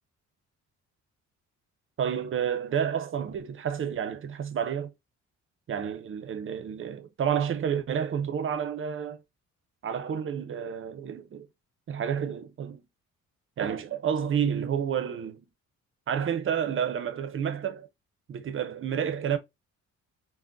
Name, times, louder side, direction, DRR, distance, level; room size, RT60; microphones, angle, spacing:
voice 1, 2.0-4.9 5.7-9.2 9.8-11.5 11.9-12.8 13.6-15.5 16.1-17.9 18.3-19.4, right 8 dB, 45° right, 0.6 m, -30 dB
3.6 x 2.1 x 2.5 m
cardioid pair, 90°, 30 cm